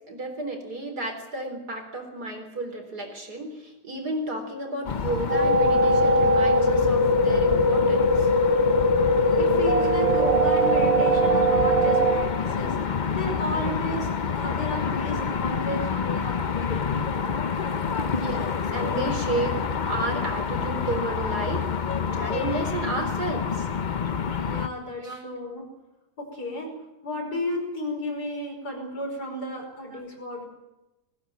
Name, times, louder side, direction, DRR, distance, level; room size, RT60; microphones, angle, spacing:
voice 1, 0.1-8.3 15.9-16.0 18.1-19.6 19.9-21.7 22.1-23.7 25.0-25.2, right 2 dB, 70° right, 4 dB, 4.4 m, -32 dB
sound 1, 4.8-24.7, left 6 dB, 45° left, 0.6 m, -28 dB
sound 2, 5.3-12.1, equal, 20° right, 4.6 m, -20 dB
voice 2, 9.4-17.0 24.4-25.7 26.2-26.7 27.0-30.5, left 1 dB, 70° left, 1 dB, 6.0 m, -33 dB
19.5 x 17.0 x 9.5 m, 1.0 s
omnidirectional pair, 1.8 m